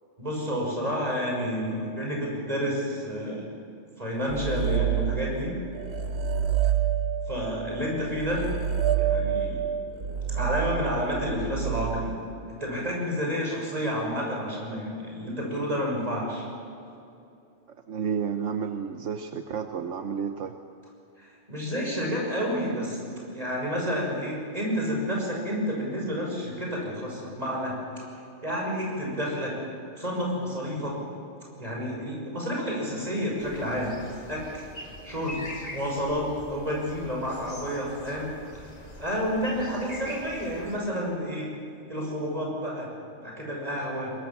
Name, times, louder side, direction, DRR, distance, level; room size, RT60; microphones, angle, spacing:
voice 1, 0.2-3.4 4.0-5.6 7.3-8.5 9.0-9.6 10.3-12.1 12.5-16.5 21.2-23.0 23.3-27.8 28.4-29.6 29.9-31.0 31.6-34.0 34.3-34.7 35.0-35.4 35.7-38.6 39.0-41.5 41.9-42.9 43.2-44.1, equal, 30° right, -2 dB, 6.3 m, -30 dB
sound 1, 4.3-5.5 5.7-12.3, right 9 dB, 60° right, 1.3 m, -28 dB
voice 2, 17.9-20.5, right 7 dB, 80° right, 6 dB, 1.3 m, -31 dB
sound 2, 33.4-40.8, left 1 dB, 30° left, 2.5 m, -43 dB
23.0 x 21.5 x 7.3 m, 2.7 s
omnidirectional pair, 1.3 m